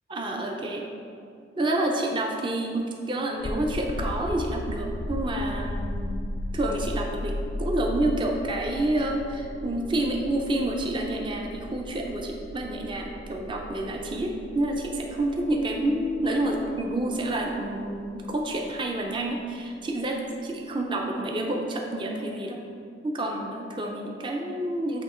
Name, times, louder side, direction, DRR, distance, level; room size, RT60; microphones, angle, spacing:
voice 1, 0.1-0.8 1.6-22.6 23.0-25.0, right 1 dB, 30° right, 1 dB, 0.5 m, -29 dB
sound 1, 3.4-20.3, left 1 dB, 60° left, 0.4 m, -36 dB
7.8 x 2.9 x 4.3 m, 2.4 s
head